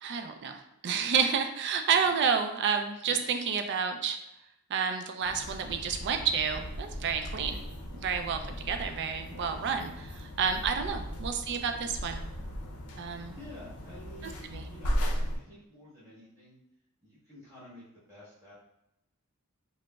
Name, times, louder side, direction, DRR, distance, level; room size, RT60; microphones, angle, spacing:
voice 1, 0.0-4.2 4.7-7.6 7.9-12.2 13.0-13.4 14.2-14.7, right 6 dB, 55° right, 7 dB, 0.4 m, -30 dB
sound 1, 5.2-15.4, equal, 90° left, 0.5 m, -37 dB
voice 2, 13.0-14.4 14.7-16.6 17.0-18.5, left 1 dB, 15° right, -10 dB, 1.4 m, -51 dB
4.9 x 2.0 x 2.2 m, 0.84 s
head